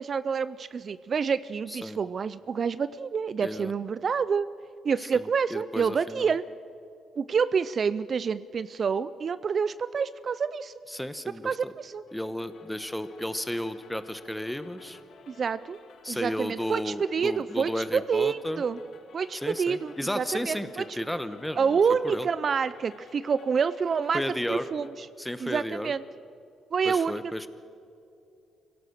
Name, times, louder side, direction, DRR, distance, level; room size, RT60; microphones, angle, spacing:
voice 1, 0.0-4.5 4.8-6.4 7.2-10.7 11.4-12.0 15.3-15.8 16.1-18.8 19.1-20.8 21.6-24.2 24.5-24.9 25.4-26.0 26.7-27.2, right 6 dB, 45° right, 15 dB, 0.4 m, -28 dB
voice 2, 1.7-2.0 3.4-3.7 5.1-6.4 10.9-11.7 12.1-15.0 16.0-18.6 19.3-21.6 22.0-22.3 24.1-24.7 25.2-25.9 26.8-27.5, left 1 dB, 5° left, 12 dB, 1.1 m, -33 dB
sound 1, 12.1-24.9, left 5 dB, 65° left, 1.5 m, -54 dB
24.5 x 17.0 x 6.7 m, 2.5 s
cardioid pair, 90°, 0 cm